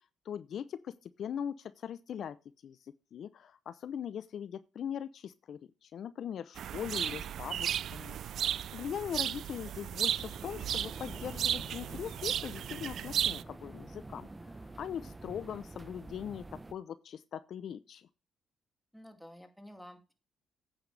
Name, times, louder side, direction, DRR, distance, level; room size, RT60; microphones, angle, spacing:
voice 1, 0.2-2.4 2.6-18.1, left 8 dB, 60° left, 0.6 m, -41 dB
sound 1, 6.6-13.4, right 10 dB, 65° right, 0.3 m, -35 dB
sound 2, 9.9-16.7, right 2 dB, 20° right, 1.0 m, -48 dB
voice 2, 18.9-20.1, left 1 dB, ahead, 2.5 m, -51 dB
9.1 x 8.9 x 3.4 m
cardioid pair, 90°, 0 cm